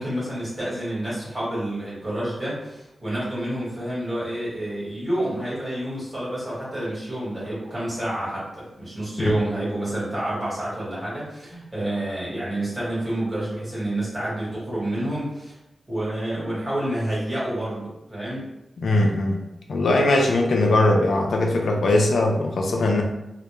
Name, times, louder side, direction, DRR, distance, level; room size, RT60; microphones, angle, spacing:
voice 1, 0.0-15.5 15.9-18.5, right 1 dB, 20° right, -8 dB, 1.1 m, -29 dB
voice 2, 18.8-19.4 19.7-23.0, left 2 dB, 85° left, 1 dB, 0.3 m, -20 dB
2.1 x 2.0 x 3.0 m, 0.91 s
wide cardioid pair, 125°, 0 cm